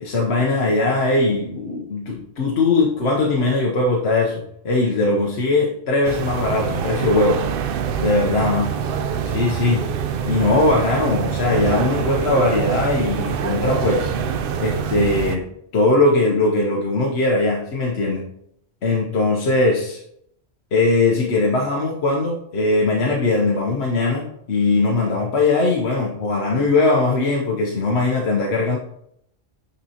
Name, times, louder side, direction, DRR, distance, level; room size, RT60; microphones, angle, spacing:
voice 1, 0.0-7.4 8.0-8.6 9.3-9.9 10.2-14.1 14.6-15.4 15.7-18.2 18.8-20.0 20.7-28.8, left 2 dB, 60° left, -2 dB, 1.1 m, -20 dB
sound 1, 6.0-15.4, right 7 dB, 60° right, 0.6 m, -25 dB
8.4 x 4.3 x 2.8 m, 0.73 s
omnidirectional pair, 1.3 m